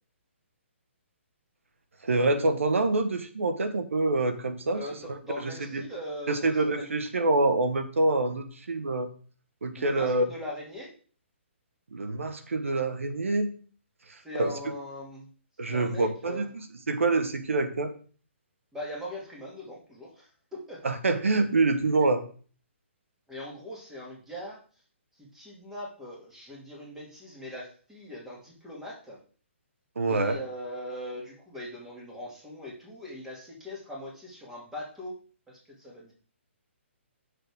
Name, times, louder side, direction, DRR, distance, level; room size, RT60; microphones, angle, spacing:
voice 1, 2.0-4.8 5.4-5.8 6.3-9.1 9.6-10.3 11.9-13.5 14.1-14.5 15.6-16.5 16.9-17.9 20.8-22.2 30.0-30.4, right 2 dB, 90° right, 9 dB, 1.3 m, -26 dB
voice 2, 4.7-6.9 9.8-10.9 14.2-15.3 15.7-16.5 18.7-20.8 23.3-24.6 25.2-29.2 30.1-35.2 35.5-36.1, left 1 dB, 5° right, -4 dB, 2.6 m, -40 dB
7.7 x 6.6 x 3.7 m, 0.42 s
hypercardioid pair, 155°, 7 cm